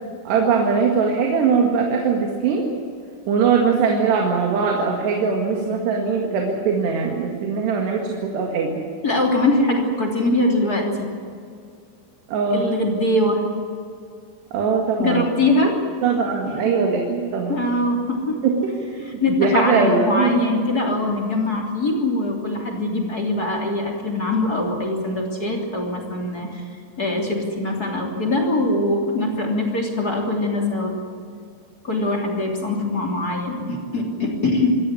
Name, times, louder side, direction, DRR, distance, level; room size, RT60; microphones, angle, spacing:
voice 1, 0.3-2.7 3.3-8.7 12.3-12.7 14.5-15.3 16.0-17.6 18.4-18.5 18.9-20.3, right 5 dB, 80° right, 1 dB, 4.1 m, -21 dB
voice 2, 9.0-11.1 12.5-13.4 15.0-15.8 16.5-16.6 17.5-18.4 19.0-26.6 27.0-30.9 31.8-34.8, left 2 dB, 25° left, 0 dB, 3.1 m, -22 dB
26.5 x 13.5 x 10.0 m, 2.3 s
omnidirectional pair, 4.9 m